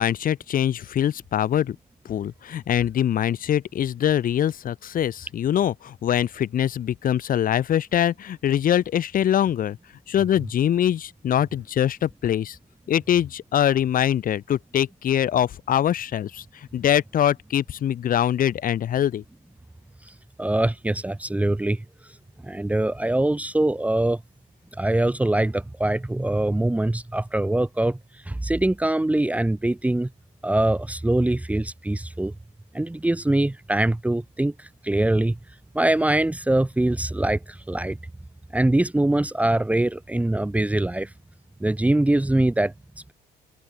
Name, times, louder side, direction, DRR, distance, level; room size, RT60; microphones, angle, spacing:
voice 1, 0.0-1.7 2.1-9.8 10.1-12.6 12.9-16.4 16.7-19.2, left 10 dB, 55° left, 5.0 m, -23 dB
voice 2, 20.4-21.8 22.4-24.2 24.8-28.0 28.3-30.1 30.4-32.3 32.7-34.5 34.8-35.4 35.7-38.0 38.5-41.1 41.6-42.7, right 1 dB, 10° right, 1.7 m, -23 dB
open air
cardioid pair, 110°, 17 cm